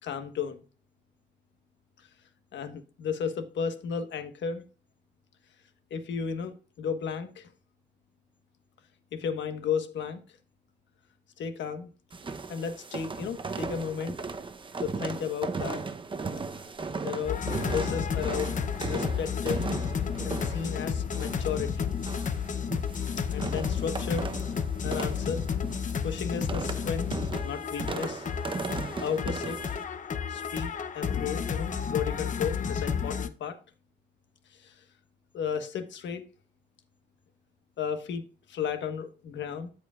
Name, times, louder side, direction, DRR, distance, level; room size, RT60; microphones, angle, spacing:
voice 1, 0.0-0.6 2.5-4.6 5.9-7.5 9.1-10.2 11.4-11.9 12.5-14.2 14.8-15.8 17.0-18.6 18.9-19.7 20.2-21.9 23.3-24.3 24.8-25.5 26.0-27.1 27.4-28.3 29.0-29.6 30.3-33.6 34.5-34.8 35.3-36.2 37.8-38.2 38.5-39.7, left 7 dB, 70° left, 1.3 m, -33 dB
sound 1, 12.1-29.8, right 4 dB, 25° right, 0.8 m, -37 dB
sound 2, 17.2-33.3, left 7 dB, 40° left, 0.7 m, -32 dB
13.5 x 5.1 x 2.4 m
cardioid pair, 90°, 20 cm